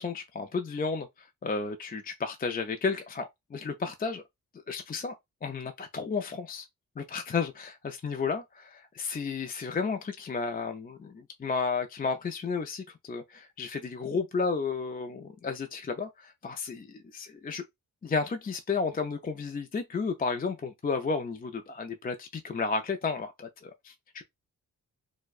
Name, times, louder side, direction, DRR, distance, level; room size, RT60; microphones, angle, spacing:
voice 1, 0.0-4.2 4.7-6.7 7.0-17.6 18.0-24.2, left 4 dB, 25° left, 0.4 m, -33 dB
4.4 x 2.2 x 2.3 m
cardioid pair, 80°, 35 cm